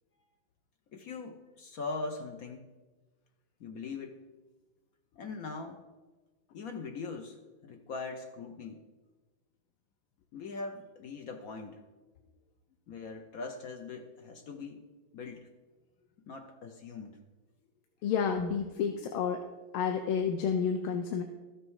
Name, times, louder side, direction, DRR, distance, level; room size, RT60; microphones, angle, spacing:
voice 1, 0.9-2.7 3.6-4.2 5.2-5.8 6.5-7.4 7.6-8.8 10.3-11.8 12.9-14.8 15.1-15.5 16.3-17.2, left 4 dB, 65° left, 5 dB, 0.8 m, -41 dB
voice 2, 18.0-19.4 19.7-21.2, left 7 dB, 85° left, 5 dB, 1.5 m, -30 dB
13.0 x 6.4 x 4.7 m, 1.3 s
omnidirectional pair, 2.3 m